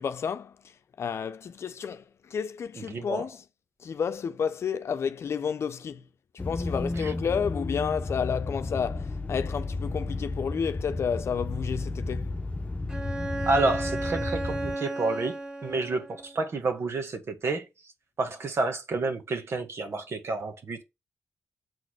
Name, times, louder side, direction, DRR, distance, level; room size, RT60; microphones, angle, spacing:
voice 1, 0.0-3.4 3.8-6.1 6.3-12.3, left 7 dB, 65° left, 0.7 m, -31 dB
voice 2, 2.8-3.3 7.0-7.1 13.5-17.9 18.2-20.8, right 3 dB, 60° right, 1.7 m, -30 dB
sound 1, 6.4-14.8, left 3 dB, 30° left, 0.9 m, -33 dB
Bowed string instrument, 12.9-16.4, right 2 dB, 15° right, 2.2 m, -34 dB
7.0 x 4.0 x 6.5 m
supercardioid pair, 50°, 5 cm